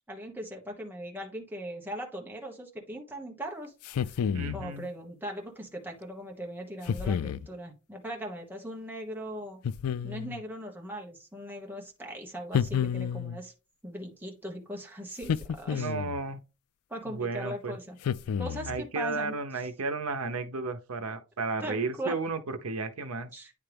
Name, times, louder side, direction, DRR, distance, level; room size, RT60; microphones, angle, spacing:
voice 1, 0.1-3.7 4.0-9.6 10.0-13.5 13.8-15.9 16.9-18.0 18.4-19.3 21.6-22.1 23.3-23.5, equal, 10° right, 1.2 m, -39 dB
sound 1, 3.8-4.7 6.9-7.5 9.6-10.4 12.5-13.4 15.2-16.2 18.0-18.8, left 7 dB, 90° left, 0.4 m, -30 dB
voice 2, 4.3-4.9 15.7-16.4 17.1-17.8 18.7-23.3, right 3 dB, 80° right, 0.8 m, -33 dB
9.7 x 3.3 x 3.4 m
head